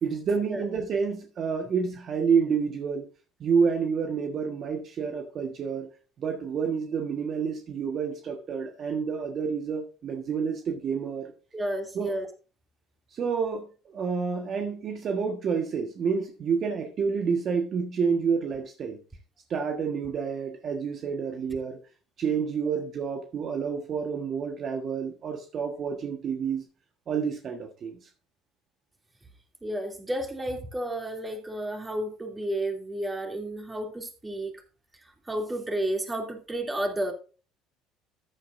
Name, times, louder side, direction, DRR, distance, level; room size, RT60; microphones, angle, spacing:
voice 1, 0.0-3.1 3.4-5.9 6.2-11.3 11.9-12.1 13.1-19.0 19.5-21.8 22.2-26.6 27.1-28.1, right 6 dB, 50° right, 1.5 m, -29 dB
voice 2, 11.5-12.3 29.6-34.6 35.3-37.1, right 1 dB, 15° right, 2.9 m, -31 dB
13.5 x 9.1 x 2.6 m
hypercardioid pair, 70°, 0 cm